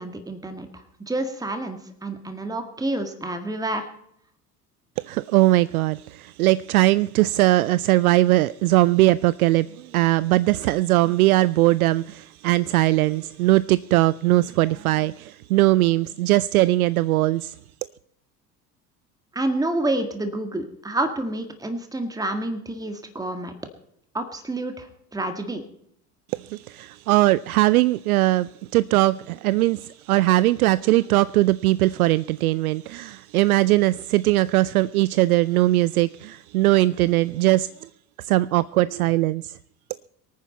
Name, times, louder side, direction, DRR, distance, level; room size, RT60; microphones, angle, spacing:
voice 1, 0.0-3.9 19.3-23.5 24.1-25.7, right 1 dB, 5° right, 1.9 m, -28 dB
voice 2, 5.0-17.5 26.3-37.9 38.2-39.6, right 17 dB, 60° right, 0.5 m, -20 dB
24.0 x 9.5 x 4.2 m
figure-of-eight pair, 70°, 49 cm